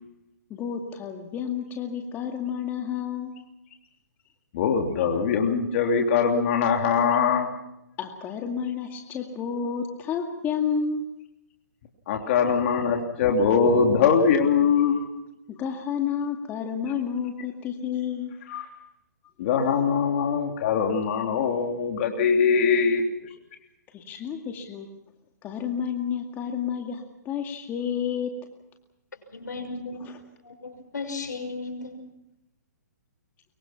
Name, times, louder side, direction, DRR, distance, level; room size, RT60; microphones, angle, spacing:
voice 1, 0.5-3.3 8.0-11.2 15.5-18.3 23.9-24.9 25.4-28.5 30.0-30.2, left 7 dB, 20° left, 3 dB, 2.2 m, -30 dB
voice 2, 4.5-7.5 12.1-15.0 18.5-18.6 19.4-23.0, left 6 dB, 45° left, 2 dB, 3.2 m, -22 dB
voice 3, 29.3-30.0 30.4-32.0, left 3 dB, 85° left, 7 dB, 6.2 m, -35 dB
25.0 x 23.5 x 6.0 m, 0.88 s
hypercardioid pair, 140°, 10 cm